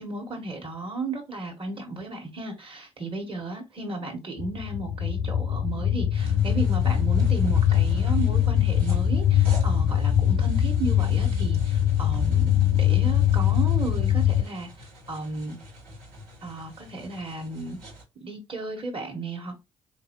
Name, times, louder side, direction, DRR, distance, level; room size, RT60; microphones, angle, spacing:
voice 1, 0.0-15.6 16.4-17.8 18.2-19.6, right 2 dB, 35° right, 1.4 m, -34 dB
sound 1, 4.4-14.4, left 10 dB, 60° left, 0.5 m, -22 dB
sound 2, 6.1-18.0, equal, 75° right, 1.6 m, -43 dB
4.3 x 2.6 x 2.9 m
hypercardioid pair, 45°, 16 cm